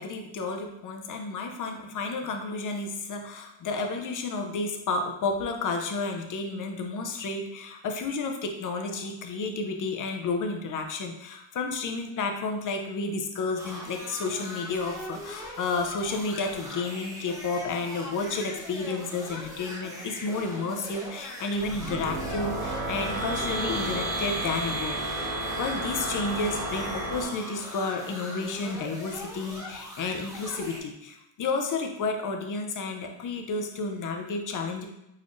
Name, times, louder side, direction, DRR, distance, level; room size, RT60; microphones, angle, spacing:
voice 1, 0.0-25.3 25.6-34.9, left 3 dB, 40° left, 3 dB, 0.5 m, -31 dB
sound 1, 13.5-30.8, left 1 dB, 5° right, 0.8 m, -41 dB
sound 2, 21.6-27.2, right 2 dB, 75° right, 1.2 m, -32 dB
4.1 x 3.0 x 2.5 m, 0.84 s
cardioid pair, 130°, 49 cm